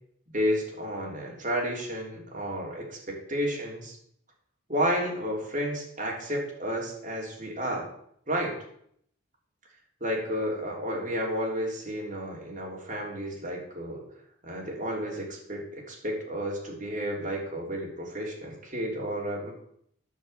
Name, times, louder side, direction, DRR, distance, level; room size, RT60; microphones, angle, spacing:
voice 1, 0.3-4.0 4.7-7.8 8.3-8.6 10.0-14.0 14.4-19.5, equal, 40° right, -1 dB, 3.4 m, -31 dB
10.5 x 6.5 x 7.9 m, 0.69 s
head